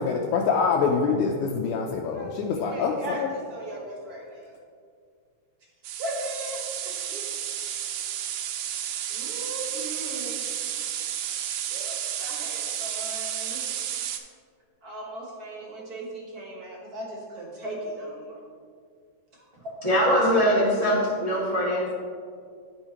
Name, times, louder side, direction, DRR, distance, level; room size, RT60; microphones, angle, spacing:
voice 1, 0.0-3.3, left 5 dB, 85° left, 1 dB, 2.0 m, -25 dB
voice 2, 1.9-4.6 6.0-7.2 9.1-10.4 11.7-13.7 14.8-18.4 19.3-19.5, right 1 dB, 50° right, -3 dB, 1.2 m, -38 dB
sound 1, 5.8-14.2, right 10 dB, 90° right, 2.0 m, -32 dB
voice 3, 19.8-21.9, equal, 30° right, -8 dB, 0.7 m, -22 dB
11.0 x 5.6 x 2.8 m, 2.1 s
omnidirectional pair, 3.3 m